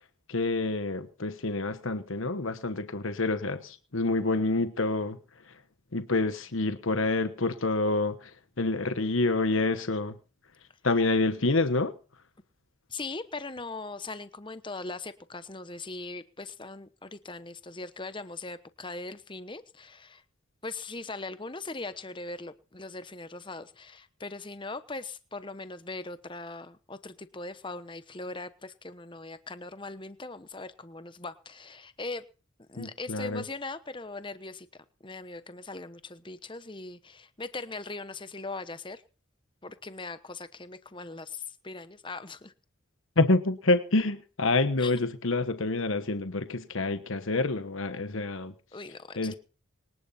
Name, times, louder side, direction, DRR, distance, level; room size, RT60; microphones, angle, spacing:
voice 1, 0.3-5.2 5.9-10.2 10.8-11.9 32.8-33.4 43.2-48.5 49.2-49.3, left 2 dB, 70° left, 10 dB, 1.2 m, -27 dB
voice 2, 12.9-20.2 20.6-32.2 32.7-39.0 39.6-42.5 44.8-44.9 48.7-49.3, left 3 dB, 25° left, 12 dB, 1.0 m, -40 dB
24.5 x 11.0 x 4.3 m, 0.36 s
head